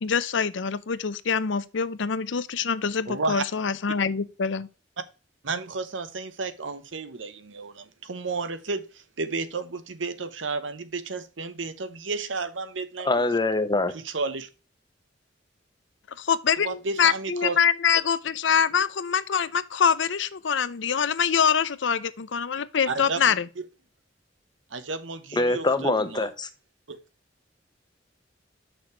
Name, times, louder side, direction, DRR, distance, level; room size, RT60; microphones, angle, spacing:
voice 1, 0.0-4.7 16.2-23.5, left 7 dB, 75° left, 0.6 m, -25 dB
voice 2, 3.1-3.5 5.4-13.1 13.9-14.5 16.6-17.6 22.9-23.2 24.7-26.3 26.9-27.0, right 3 dB, 90° right, 1.0 m, -32 dB
voice 3, 13.0-13.9 25.4-26.5, left 2 dB, 25° left, 0.9 m, -24 dB
6.7 x 6.2 x 4.4 m
head